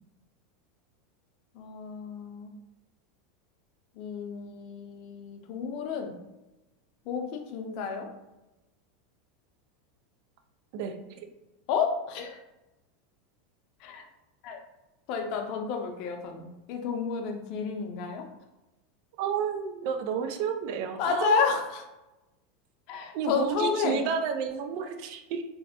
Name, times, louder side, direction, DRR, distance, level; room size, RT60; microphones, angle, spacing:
voice 1, 1.5-2.6 4.0-6.2 7.1-8.1 11.7-12.4 13.8-14.1 14.4-14.6 15.1-18.3 21.0-21.8 22.9-24.0, left 6 dB, 55° left, 4 dB, 0.5 m, -31 dB
voice 2, 10.7-11.3 19.2-21.5 23.1-25.4, right 7 dB, 60° right, 5 dB, 0.4 m, -31 dB
3.1 x 2.0 x 2.8 m, 1.0 s
supercardioid pair, 115°, 0 cm